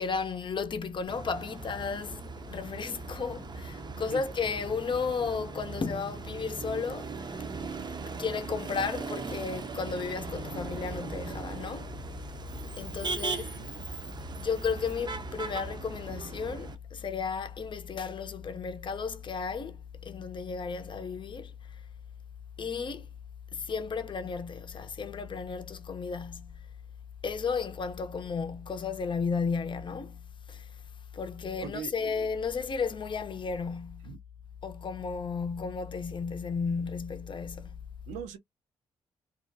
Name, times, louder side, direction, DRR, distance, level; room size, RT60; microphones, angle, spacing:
voice 1, 0.0-7.4 8.2-11.9 12.8-13.5 14.4-21.5 22.6-23.1 23.5-26.6 27.2-30.2 30.5-30.7 31.1-34.1 34.6-37.8, left 5 dB, 40° left, 0.7 m, -34 dB
Motor vehicle (road), 1.1-16.8, right 4 dB, 35° right, 0.6 m, -39 dB
voice 2, 13.1-13.9 31.6-32.1 34.0-34.2 38.1-38.4, right 8 dB, 80° right, 0.6 m, -41 dB
2.6 x 2.2 x 2.6 m
hypercardioid pair, 45°, 12 cm